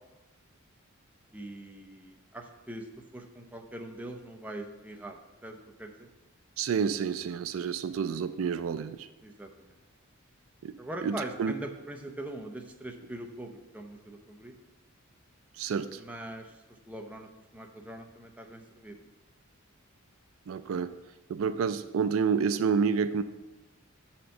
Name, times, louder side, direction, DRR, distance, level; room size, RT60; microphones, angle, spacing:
voice 1, 1.3-6.1 9.2-9.8 10.8-14.5 16.0-19.0, right 1 dB, 5° right, 2 dB, 0.6 m, -42 dB
voice 2, 6.6-9.1 10.6-10.8 11.0-11.5 15.6-16.0 20.5-20.9 21.3-23.2, right 6 dB, 65° right, 12 dB, 0.3 m, -29 dB
6.8 x 4.4 x 6.3 m, 1.1 s
head